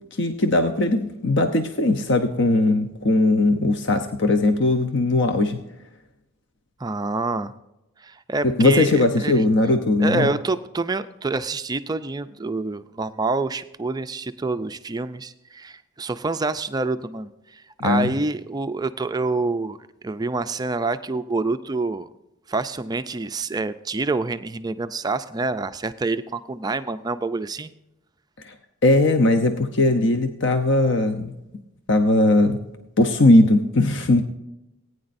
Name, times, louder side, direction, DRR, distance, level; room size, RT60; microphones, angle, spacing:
voice 1, 0.2-5.6 8.4-10.3 17.8-18.1 28.4-28.5 28.8-31.3 31.9-32.6 33.0-34.2, left 2 dB, 55° left, 7 dB, 0.7 m, -19 dB
voice 2, 6.8-7.5 8.0-9.4 10.0-19.8 20.0-22.1 22.5-27.7, right 3 dB, 20° right, 10 dB, 0.4 m, -27 dB
19.0 x 9.5 x 2.6 m, 0.90 s
head